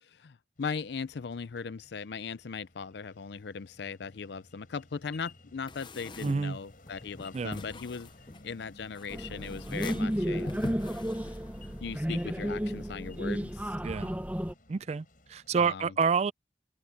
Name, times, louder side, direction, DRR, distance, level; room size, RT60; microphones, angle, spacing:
voice 1, 0.0-8.1 8.4-10.8 11.3-11.4 11.8-13.8 15.5-15.9, left 5 dB, 70° left, 0.5 m, -39 dB
sound 1, 0.6-15.7, left 2 dB, 50° left, 7.2 m, -57 dB
sound 2, 5.7-11.8, left 2 dB, 25° left, 0.6 m, -44 dB
voice 2, 6.2-6.6 7.3-7.6 13.8-14.1 14.7-16.3, right 5 dB, 35° right, 0.3 m, -28 dB
sound 3, 9.1-14.5, equal, 10° right, 0.8 m, -33 dB
head